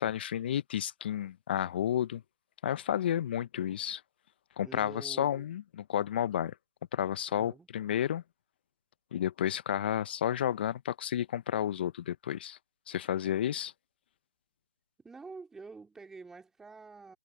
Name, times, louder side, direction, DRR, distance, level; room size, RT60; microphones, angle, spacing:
voice 1, 0.0-2.2 2.6-4.0 4.6-6.5 6.9-8.2 9.1-12.6 12.9-13.7, left 10 dB, 30° left, 0.6 m, -31 dB
voice 2, 4.6-5.5 7.4-7.7 15.0-17.2, right 4 dB, 5° right, 2.7 m, -48 dB
figure-of-eight pair, 155°, 10 cm